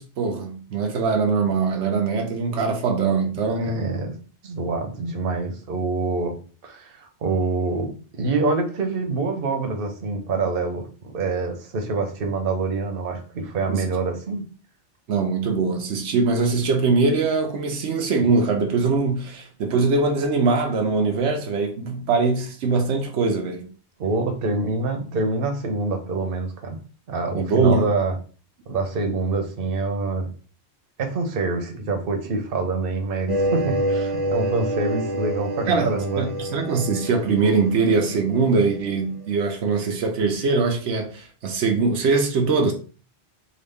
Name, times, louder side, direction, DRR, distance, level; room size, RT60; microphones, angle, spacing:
voice 1, 0.0-3.9 13.7-13.8 15.1-23.7 27.3-27.9 35.7-42.7, right 4 dB, 85° right, 0.9 m, -22 dB
voice 2, 3.7-4.1 4.4-6.4 6.6-14.5 24.0-26.8 27.1-28.2 28.7-30.3 31.0-36.3, right 3 dB, 60° right, 0.9 m, -26 dB
sound 1, 33.3-38.8, right 1 dB, 40° right, 0.5 m, -27 dB
3.8 x 2.3 x 3.4 m
omnidirectional pair, 1.1 m